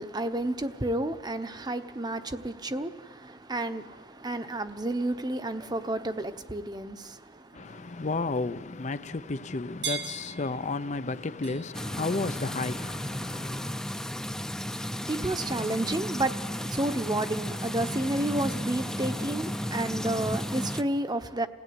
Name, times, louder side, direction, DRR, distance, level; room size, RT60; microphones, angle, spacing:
voice 1, 0.0-8.0 14.7-21.5, right 1 dB, 25° right, 1.0 m, -31 dB
sound 1, 3.8-13.5, right 7 dB, 65° right, 1.9 m, -45 dB
voice 2, 7.5-13.8, left 3 dB, 40° left, 0.6 m, -33 dB
sound 2, 11.7-20.8, equal, 5° left, 0.7 m, -33 dB
28.5 x 17.0 x 9.6 m
head